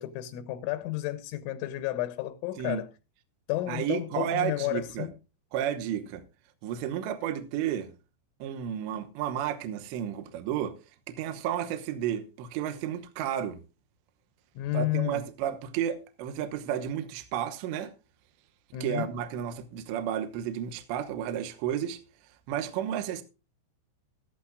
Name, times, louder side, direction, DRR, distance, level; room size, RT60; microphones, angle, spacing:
voice 1, 0.0-2.9 3.5-5.1 14.6-15.2 18.7-19.1, left 15 dB, 85° left, 3.1 m, -32 dB
voice 2, 3.7-5.1 5.5-6.2 6.6-7.9 8.4-10.8 11.1-13.6 14.7-17.9 18.8-22.0 22.5-23.2, right 10 dB, 75° right, 3.1 m, -32 dB
14.5 x 14.5 x 2.4 m
omnidirectional pair, 5.7 m